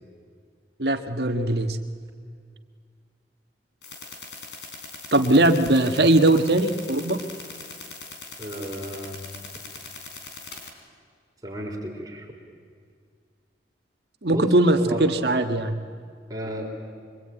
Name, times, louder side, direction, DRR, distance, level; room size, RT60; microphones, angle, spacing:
voice 1, 0.8-1.8 5.1-7.2 14.2-15.7, right 1 dB, 65° right, 7 dB, 1.5 m, -20 dB
sound 1, 3.8-10.7, left 4 dB, 75° left, 4.1 m, -41 dB
voice 2, 8.4-9.3 11.4-12.3 14.3-14.4 14.8-15.0 16.3-16.7, right 1 dB, 20° right, 0 dB, 4.2 m, -33 dB
25.0 x 24.0 x 9.1 m, 2.1 s
head